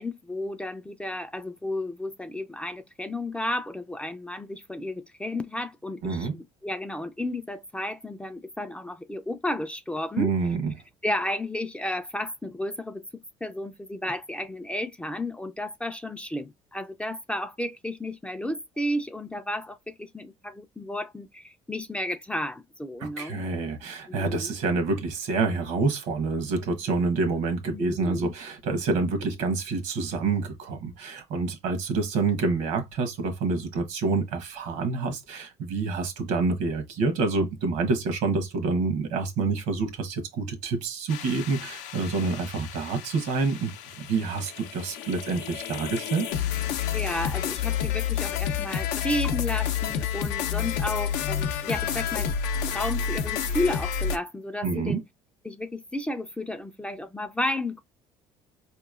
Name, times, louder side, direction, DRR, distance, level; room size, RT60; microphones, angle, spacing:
voice 1, 0.0-10.3 11.0-23.4 24.1-24.6 27.7-28.3 46.9-52.3 52.7-55.0 55.4-57.8, left 1 dB, 10° left, 0.3 m, -32 dB
voice 2, 6.0-6.4 10.2-10.7 23.0-43.7 44.0-46.3 54.6-55.0, right 4 dB, 80° right, 1.0 m, -27 dB
sound 1, 41.1-54.2, left 8 dB, 80° left, 0.5 m, -30 dB
4.5 x 2.9 x 2.4 m
cardioid pair, 105°, 13 cm